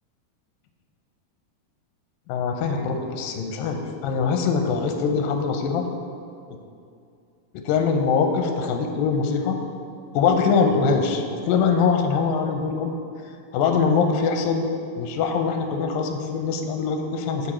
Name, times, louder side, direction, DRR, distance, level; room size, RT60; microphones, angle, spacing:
voice 1, 2.3-5.9 7.7-9.6 10.1-12.9 13.5-14.7 15.0-17.5, left 5 dB, 85° left, 4 dB, 2.3 m, -23 dB
8.2 x 4.7 x 4.2 m, 2.5 s
omnidirectional pair, 4.2 m